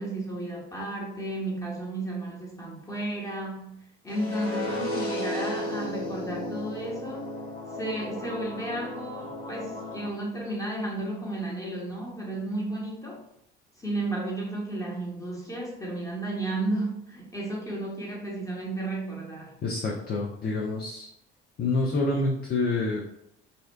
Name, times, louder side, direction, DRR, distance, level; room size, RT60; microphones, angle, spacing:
voice 1, 0.0-3.7 4.0-7.2 7.7-13.2 13.8-19.5, right 2 dB, 10° left, -3 dB, 0.9 m, -33 dB
sound 1, 4.1-10.1, left 1 dB, 80° left, 0.9 m, -34 dB
voice 2, 19.6-21.1 21.6-23.1, left 3 dB, 35° left, -2 dB, 0.4 m, -27 dB
2.6 x 2.1 x 2.2 m, 0.77 s
figure-of-eight pair, 50°, 29 cm